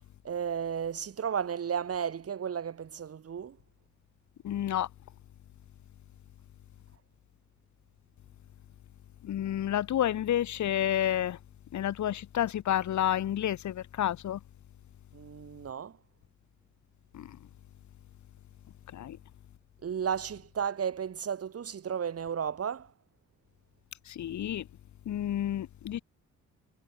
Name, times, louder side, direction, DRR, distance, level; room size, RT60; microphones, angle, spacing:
voice 1, 0.2-3.6 15.1-16.0 19.8-22.9, right 7 dB, 50° right, 5.8 m, -33 dB
voice 2, 4.4-4.9 9.2-11.4 11.7-14.4 17.1-17.4 18.9-19.2 24.1-24.7 25.1-26.0, left 11 dB, 70° left, 4.0 m, -30 dB
cardioid pair, 90°, 30 cm